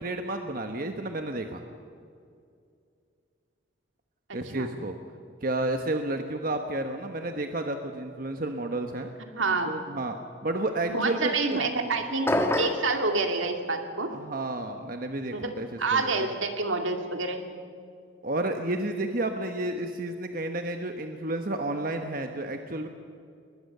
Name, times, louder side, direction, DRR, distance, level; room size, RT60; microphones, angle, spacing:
voice 1, 0.0-1.6 4.3-5.0 5.4-9.1 9.6-10.2 10.4-11.7 14.1-16.2 18.2-22.9, right 2 dB, 45° right, 5 dB, 1.2 m, -31 dB
voice 2, 9.4-9.7 10.9-14.1 15.3-15.5 15.8-17.5, right 3 dB, 80° right, 5 dB, 2.3 m, -28 dB
sound 1, 12.3-12.9, left 1 dB, 15° left, 1.4 m, -25 dB
21.0 x 20.5 x 6.8 m, 2.4 s
head